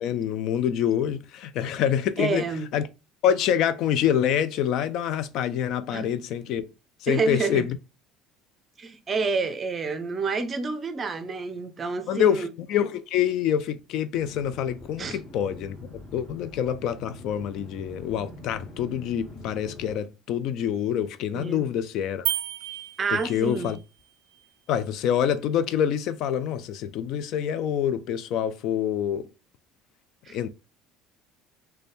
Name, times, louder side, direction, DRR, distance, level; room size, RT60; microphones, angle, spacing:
voice 1, 0.0-2.4 2.7-2.9 3.2-6.6 7.0-7.8 12.1-15.8 16.1-22.3 23.1-23.8 24.7-29.3 30.3-30.5, left 9 dB, 60° left, 0.3 m, -26 dB
voice 2, 2.2-2.7 5.9-6.1 7.1-7.7 8.8-12.5 15.0-15.2 21.3-21.7 23.0-23.7 30.3-30.4, right 4 dB, 30° right, 0.5 m, -28 dB
sound 1, 14.1-19.9, left 1 dB, 25° left, 2.3 m, -44 dB
sound 2, 22.3-23.8, right 14 dB, 75° right, 0.3 m, -32 dB
4.0 x 2.2 x 3.4 m
cardioid pair, 130°, 0 cm